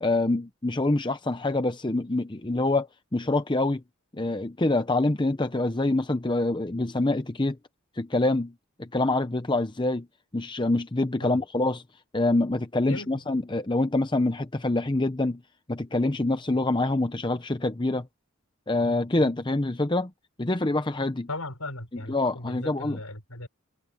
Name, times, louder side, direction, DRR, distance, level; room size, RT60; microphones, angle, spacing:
voice 1, 0.0-3.8 4.1-7.6 8.0-8.5 8.8-10.1 10.3-11.8 12.1-15.4 15.7-18.1 18.7-20.1 20.4-21.3 22.1-23.0, left 2 dB, 20° left, 0.7 m, -26 dB
voice 2, 21.3-23.5, left 2 dB, 75° left, 6.0 m, -37 dB
head